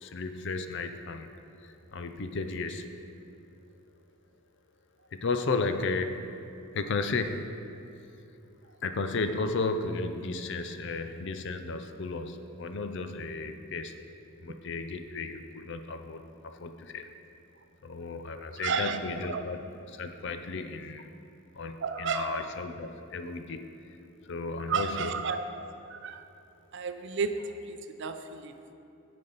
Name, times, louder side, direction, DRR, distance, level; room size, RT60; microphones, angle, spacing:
voice 1, 0.0-1.3 1.6-3.0 5.1-6.4 6.7-7.7 8.8-14.0 14.4-17.1 17.8-21.1 21.5-24.0 24.2-25.2, left 3 dB, 60° left, 8 dB, 0.5 m, -34 dB
voice 2, 18.6-19.5 21.8-22.5 24.7-25.4 25.9-26.3 26.7-28.7, right 5 dB, 60° right, 8 dB, 0.5 m, -32 dB
15.0 x 5.2 x 4.0 m, 2.7 s
head